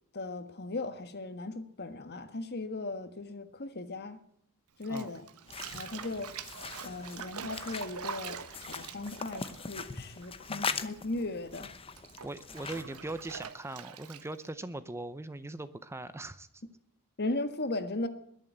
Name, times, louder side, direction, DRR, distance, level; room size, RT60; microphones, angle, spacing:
voice 1, 0.1-4.2 4.8-5.3 5.7-6.3 6.8-11.7 17.2-18.1, left 2 dB, 50° left, 10 dB, 1.5 m, -37 dB
Bathtub (filling or washing), 4.8-10.7 10.9-14.5, right 6 dB, 90° right, 1.2 m, -44 dB
sound 1, 5.5-13.5, left 5 dB, 25° left, 0.9 m, -41 dB
voice 2, 10.5-10.8 12.2-16.6, right 2 dB, 10° right, 13 dB, 0.6 m, -41 dB
21.0 x 7.3 x 8.0 m, 0.73 s
head